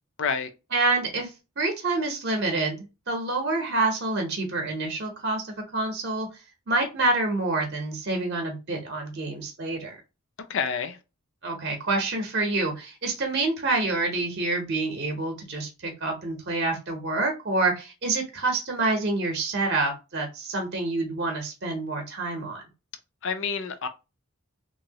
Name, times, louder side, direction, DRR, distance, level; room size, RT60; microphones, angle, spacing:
voice 1, 0.2-0.5 10.5-11.0 23.2-23.9, left 6 dB, 55° left, 0.4 m, -28 dB
voice 2, 0.7-1.3 1.6-6.3 6.7-10.0 11.4-22.6, right 2 dB, 50° right, 0.7 m, -27 dB
2.9 x 2.6 x 2.8 m
head